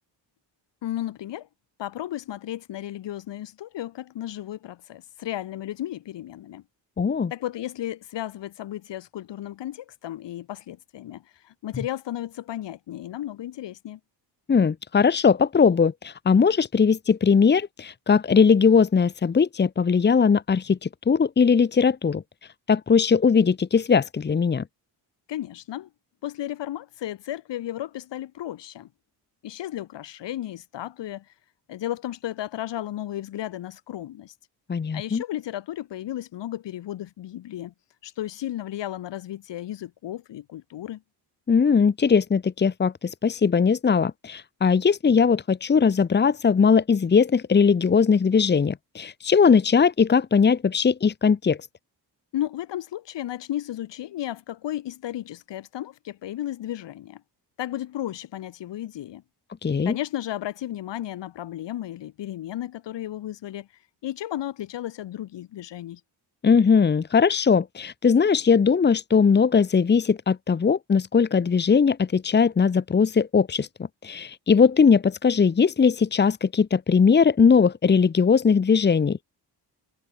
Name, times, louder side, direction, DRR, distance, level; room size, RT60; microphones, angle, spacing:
voice 1, 0.8-1.5 1.8-6.6 7.3-14.0 25.3-25.9 26.2-28.9 29.4-31.2 31.7-34.3 34.9-37.7 38.0-41.0 52.3-57.2 57.6-59.2 59.9-63.7 64.0-66.0, left 13 dB, 85° left, 7.4 m, -34 dB
voice 2, 7.0-7.3 14.5-22.2 22.7-24.6 34.7-35.2 41.5-51.6 59.6-60.0 66.4-73.7 74.0-79.2, left 6 dB, 25° left, 1.7 m, -20 dB
cardioid pair, 180°, 42 cm